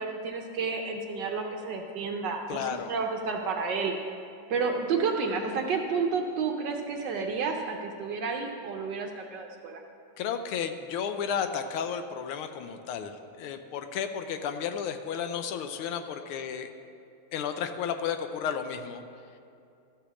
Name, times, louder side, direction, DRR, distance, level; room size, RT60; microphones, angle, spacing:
voice 1, 0.0-3.9 4.5-9.8, right 5 dB, 65° right, 3 dB, 1.2 m, -31 dB
voice 2, 2.5-2.9 10.2-16.7 17.3-19.0, left 7 dB, 80° left, 8 dB, 1.5 m, -33 dB
13.0 x 5.0 x 6.9 m, 2.5 s
omnidirectional pair, 2.4 m